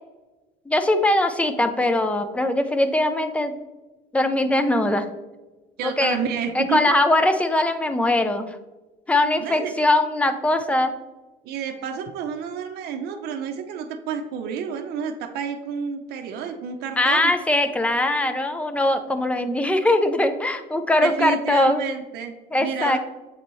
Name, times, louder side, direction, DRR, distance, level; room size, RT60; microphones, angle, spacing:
voice 1, 0.7-3.5 4.1-5.1 5.8-6.2 6.5-8.6 9.1-10.9 17.0-21.8 22.5-23.0, left 1 dB, 5° left, 8 dB, 0.5 m, -21 dB
voice 2, 5.8-6.8 9.4-9.7 11.4-17.3 21.0-22.3 22.6-23.0, right 7 dB, 70° right, 5 dB, 0.7 m, -30 dB
7.5 x 4.0 x 3.1 m, 1.1 s
cardioid pair, 135°, 17 cm